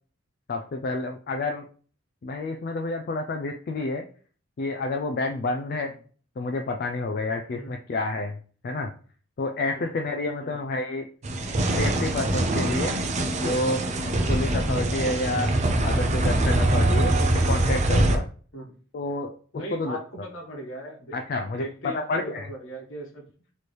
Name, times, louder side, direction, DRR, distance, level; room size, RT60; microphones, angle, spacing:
voice 1, 0.5-1.6 2.2-4.0 4.6-5.9 6.4-8.4 8.6-8.9 9.4-11.1 11.8-13.0 13.4-13.8 14.3-15.6 15.8-18.2 18.9-19.3 19.7-20.0 21.1-22.5, left 2 dB, 45° left, 4 dB, 0.3 m, -29 dB
sound 1, 11.2-18.2, right 1 dB, 35° right, 0.5 m, -23 dB
voice 2, 19.5-21.2 21.5-23.2, right 1 dB, 65° left, 1 dB, 1.2 m, -39 dB
4.2 x 3.1 x 3.2 m, 0.42 s
head